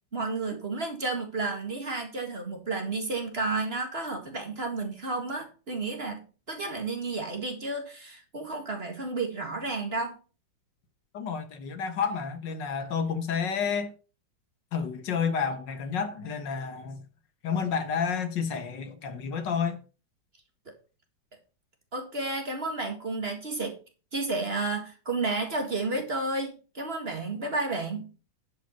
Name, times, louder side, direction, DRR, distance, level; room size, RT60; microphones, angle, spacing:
voice 1, 0.1-10.2 21.9-23.8 24.1-28.1, right 3 dB, 35° right, 1.9 m, -32 dB
voice 2, 11.1-13.9 14.7-17.0 17.4-19.8, left 6 dB, 70° left, 1.9 m, -30 dB
10.5 x 5.6 x 5.7 m
omnidirectional pair, 2.0 m